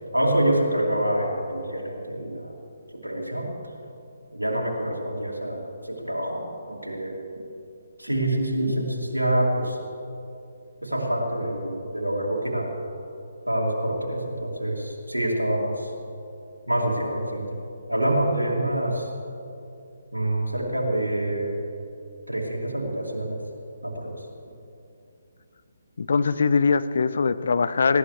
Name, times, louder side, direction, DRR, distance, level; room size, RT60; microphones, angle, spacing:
voice 1, 0.1-2.5 2.9-3.5 4.3-7.2 8.0-9.8 10.8-12.7 13.5-15.9 16.7-17.6 17.9-19.1 20.1-21.6 22.3-23.4 23.8-24.3, right 1 dB, 85° right, -2 dB, 2.9 m, -26 dB
voice 2, 26.0-28.0, left 5 dB, 55° left, 14 dB, 0.5 m, -22 dB
19.0 x 17.0 x 3.4 m, 2.7 s
figure-of-eight pair, 140°, 0 cm